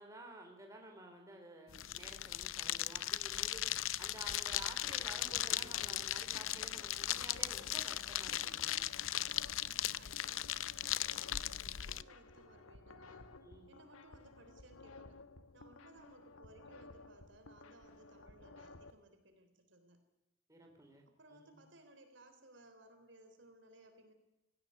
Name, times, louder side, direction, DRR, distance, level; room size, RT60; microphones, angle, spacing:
voice 1, 0.0-8.9 13.4-13.8 20.5-21.0 21.3-21.6, right 2 dB, 15° right, 2 dB, 3.7 m, -53 dB
sound 1, 1.7-12.0, left 13 dB, 70° left, 0.6 m, -38 dB
sound 2, 4.3-18.9, left 2 dB, 90° left, 1.4 m, -56 dB
voice 2, 9.6-13.3 13.7-15.2 15.5-20.0 21.1-24.1, right 1 dB, 60° right, 7 dB, 3.7 m, -61 dB
18.0 x 17.0 x 9.5 m, 0.97 s
head